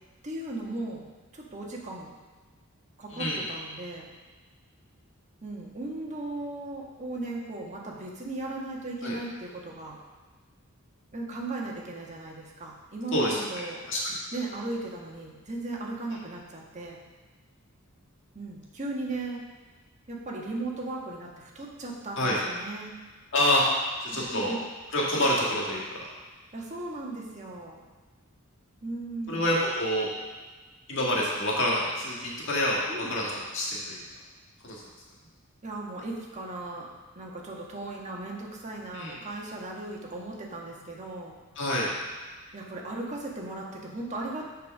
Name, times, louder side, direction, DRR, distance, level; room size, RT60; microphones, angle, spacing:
voice 1, 0.2-1.0 1.3-2.1 3.0-4.1 5.4-10.0 11.1-13.8 14.3-17.0 18.3-19.4 20.1-22.9 24.1-24.6 25.8-25.9 26.5-27.8 28.8-29.4 32.9-33.1 35.6-36.9 37.1-41.4 42.5-44.4, right 2 dB, 35° right, -2 dB, 1.4 m, -37 dB
voice 2, 3.1-3.5 9.0-9.2 13.1-13.4 13.9-14.1 22.2-22.4 23.3-23.7 24.0-24.5 24.9-26.0 29.3-30.1 30.9-34.0 34.6-34.8 38.9-39.2 41.6-41.9, left 1 dB, 65° left, -4 dB, 1.8 m, -27 dB
6.5 x 5.1 x 6.5 m, 1.3 s
head